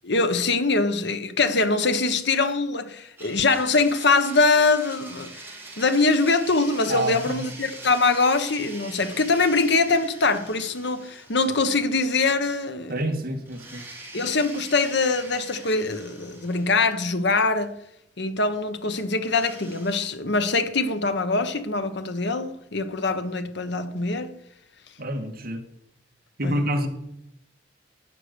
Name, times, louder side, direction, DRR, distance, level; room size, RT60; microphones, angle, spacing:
voice 1, 0.0-5.3 5.8-12.9 14.1-17.7 18.2-24.3 26.4-26.5, left 3 dB, 65° left, 1.2 m, -23 dB
Domestic sounds home sounds, 3.2-12.3 12.6-12.7 13.5-17.4 19.2-20.1, right 2 dB, 10° right, 3.3 m, -43 dB
voice 2, 6.9-7.4 12.9-13.8 25.0-25.6 26.4-26.9, right 1 dB, 55° right, 2.0 m, -27 dB
12.0 x 9.6 x 7.0 m
head